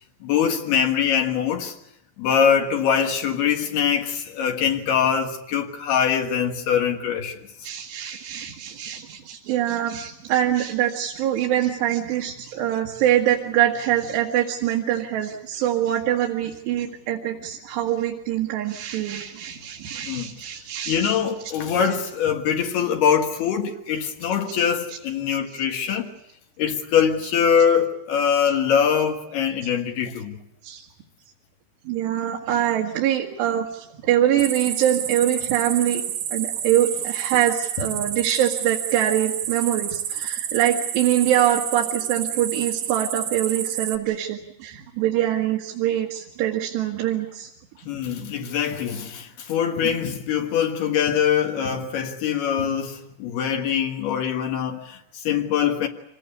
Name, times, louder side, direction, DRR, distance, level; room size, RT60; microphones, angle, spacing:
voice 1, 0.2-1.7 2.2-7.5 20.0-20.3 20.9-26.1 26.6-30.4 47.9-55.9, left 8 dB, 75° left, 3.4 m, -23 dB
voice 2, 7.6-21.2 30.6-30.9 31.9-36.0 36.3-47.5, right 11 dB, 90° right, 3.8 m, -24 dB
sound 1, 34.4-44.0, right 10 dB, 70° right, 2.7 m, -29 dB
26.0 x 18.5 x 8.2 m
omnidirectional pair, 4.7 m